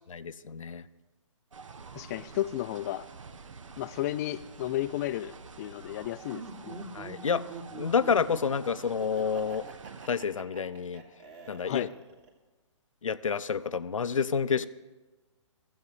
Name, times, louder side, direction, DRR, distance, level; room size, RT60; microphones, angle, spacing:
voice 1, 0.1-0.8 6.9-7.4 7.7-9.6 10.1-11.0 11.5-11.9 13.0-14.7, left 6 dB, 85° left, 13 dB, 0.6 m, -29 dB
sound 1, 1.5-10.1, right 5 dB, 80° right, 0.9 m, -48 dB
voice 2, 2.0-3.0 3.8-6.8 11.6-11.9, left 14 dB, 30° left, 11 dB, 0.4 m, -33 dB
Laughter, 6.3-12.3, right 4 dB, 30° right, 2.2 m, -45 dB
13.0 x 8.1 x 8.2 m, 1.2 s
hypercardioid pair, 135°, 16 cm